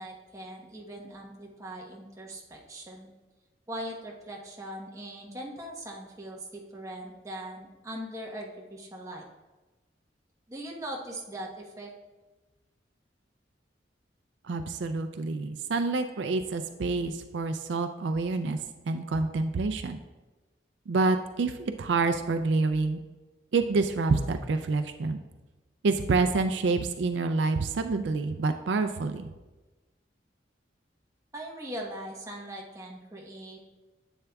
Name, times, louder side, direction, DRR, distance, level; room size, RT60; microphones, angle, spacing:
voice 1, 0.0-3.1 3.7-9.3 10.5-11.9 31.3-33.6, right 1 dB, 15° right, -1 dB, 1.0 m, -40 dB
voice 2, 14.4-18.6 18.9-20.0 20.9-23.0 23.5-25.2 25.8-29.3, right 3 dB, 75° right, 8 dB, 0.4 m, -27 dB
10.0 x 8.0 x 2.3 m, 1.2 s
head